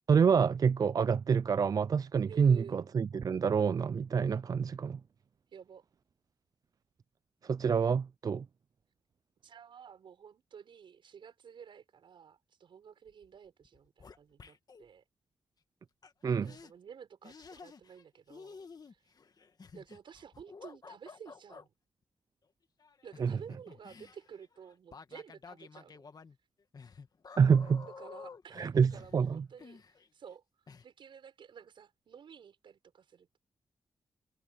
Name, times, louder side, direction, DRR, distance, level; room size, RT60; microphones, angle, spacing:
voice 1, 0.1-5.0 7.4-8.5 16.2-16.5 23.2-23.3 27.4-27.9 28.5-29.4, right 6 dB, 45° right, 0.3 m, -27 dB
voice 2, 2.3-2.8 5.5-5.8 9.4-15.0 16.4-18.6 18.9-19.0 19.7-21.7 23.0-26.0 27.8-30.4 30.8-33.4, right 7 dB, 75° right, 6.4 m, -52 dB
sound 1, 13.1-13.4 13.6-14.9 16.0-16.1 16.4-16.7 17.2-18.0 18.3-21.7 22.8-30.3 30.7-30.8, left 5 dB, 50° left, 1.8 m, -52 dB
cardioid pair, 70°, 8 cm